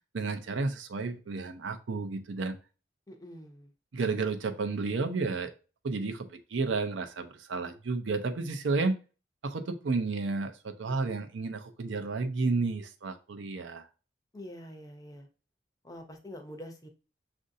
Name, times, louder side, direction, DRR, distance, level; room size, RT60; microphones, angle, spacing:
voice 1, 0.0-2.6 3.9-5.5 5.8-9.0 9.4-13.9, right 3 dB, 80° right, 8 dB, 0.5 m, -32 dB
voice 2, 3.1-3.7 14.3-15.3 15.8-16.9, equal, 20° left, 5 dB, 0.5 m, -45 dB
6.3 x 2.6 x 2.6 m, 0.34 s
head